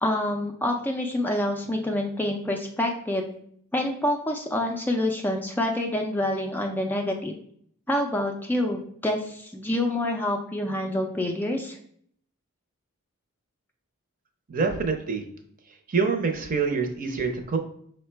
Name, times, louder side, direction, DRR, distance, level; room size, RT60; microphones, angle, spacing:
voice 1, 0.0-3.2 3.7-7.3 7.9-11.8, left 1 dB, 10° left, 2 dB, 0.3 m, -27 dB
voice 2, 14.5-15.2 15.9-17.6, right 5 dB, 40° right, 5 dB, 0.6 m, -26 dB
5.4 x 2.2 x 4.3 m, 0.64 s
head